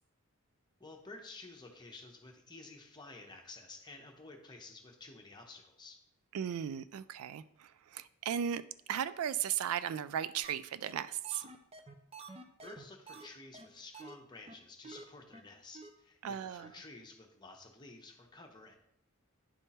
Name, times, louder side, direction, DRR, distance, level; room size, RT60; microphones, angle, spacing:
voice 1, 0.8-6.0 12.4-18.8, left 3 dB, 20° left, 2 dB, 0.9 m, -52 dB
voice 2, 6.3-8.6 8.9-11.4 16.2-16.7, right 9 dB, 80° right, 15 dB, 0.3 m, -36 dB
sound 1, 10.4-10.5 10.8-10.9 11.2-13.3 13.5-13.7 13.9-14.1 14.5-14.6 14.8-15.0 15.3-15.4 15.7-15.9 16.2-16.3 16.6-16.7, right 3 dB, 25° right, 0.5 m, -49 dB
9.8 x 3.6 x 4.2 m, 0.75 s
head